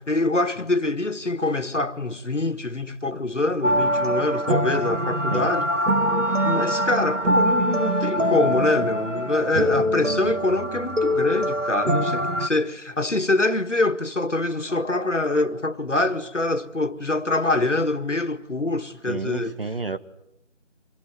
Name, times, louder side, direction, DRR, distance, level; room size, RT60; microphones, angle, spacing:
voice 1, 0.0-5.7 6.4-19.6, left 2 dB, 80° left, 1.8 m, -25 dB
sound 1, 3.6-12.5, equal, 85° right, 1.7 m, -23 dB
voice 2, 19.1-20.0, right 3 dB, 50° right, 1.5 m, -30 dB
25.5 x 19.5 x 9.4 m
figure-of-eight pair, 170°, 36 cm